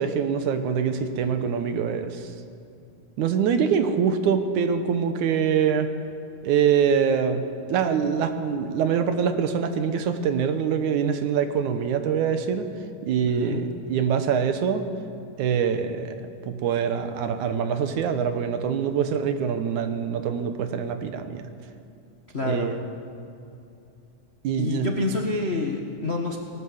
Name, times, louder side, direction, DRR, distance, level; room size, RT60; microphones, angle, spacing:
voice 1, 0.0-2.3 3.2-5.9 6.4-7.4 7.7-12.7 13.1-14.9 15.4-16.2 16.4-21.4 22.4-22.8 24.4-24.9, right 7 dB, 70° right, 9 dB, 2.4 m, -24 dB
voice 2, 13.3-13.6 22.3-22.7 24.6-26.4, left 3 dB, 90° left, 1 dB, 0.5 m, -27 dB
19.0 x 18.5 x 7.9 m, 2.6 s
omnidirectional pair, 3.8 m